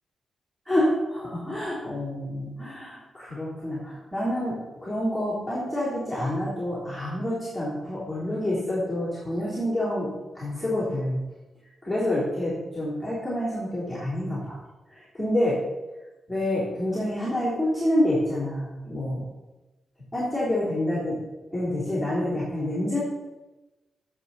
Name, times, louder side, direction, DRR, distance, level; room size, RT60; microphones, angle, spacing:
voice 1, 0.6-10.1 10.3-11.2 11.8-14.6 14.9-15.6 16.3-19.3 20.1-21.2 21.5-23.0, left 1 dB, 5° right, -9 dB, 3.4 m, -27 dB
15.5 x 7.3 x 4.2 m, 1.1 s
wide cardioid pair, 165°, 0 cm